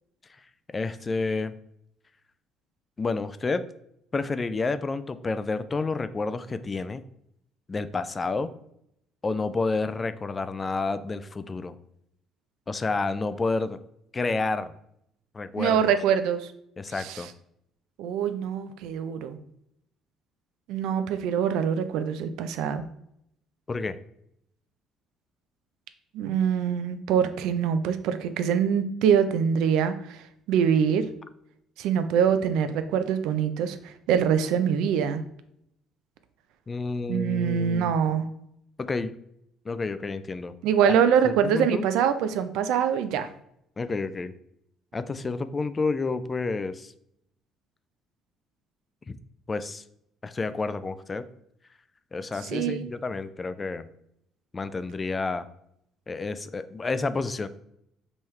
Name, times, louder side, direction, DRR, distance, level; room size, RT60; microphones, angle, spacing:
voice 1, 0.7-1.5 3.0-3.6 4.1-7.0 7.7-8.5 9.2-11.7 12.7-13.8 14.1-14.7 15.3-15.9 16.8-17.3 23.7-24.0 36.7-37.9 38.8-39.1 39.7-40.5 41.2-41.8 43.8-44.3 44.9-46.9 49.1-49.2 49.5-49.8 50.2-51.3 52.1-53.9 54.5-55.5 56.1-57.5, left 3 dB, 20° left, 13 dB, 0.3 m, -29 dB
voice 2, 15.6-16.5 17.0-17.3 18.0-19.4 20.7-22.9 26.1-30.2 30.5-31.1 31.8-35.2 37.1-38.3 40.6-43.3 52.4-52.9, right 8 dB, 80° right, 10 dB, 0.5 m, -24 dB
5.5 x 3.0 x 3.2 m, 0.75 s
cardioid pair, 130°, 0 cm